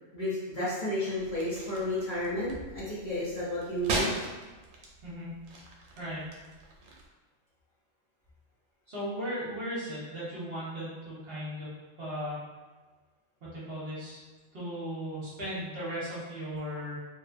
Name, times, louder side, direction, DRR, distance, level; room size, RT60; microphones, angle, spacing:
voice 1, 0.1-4.1, left 1 dB, 50° left, -10 dB, 0.7 m, -32 dB
sound 1, 1.2-7.1, right 2 dB, 80° right, 0.9 m, -39 dB
voice 2, 6.0-6.3 8.9-12.4 13.4-14.2 14.5-17.0, equal, 55° right, -8 dB, 0.9 m, -37 dB
2.7 x 2.1 x 2.4 m, 1.3 s
omnidirectional pair, 1.4 m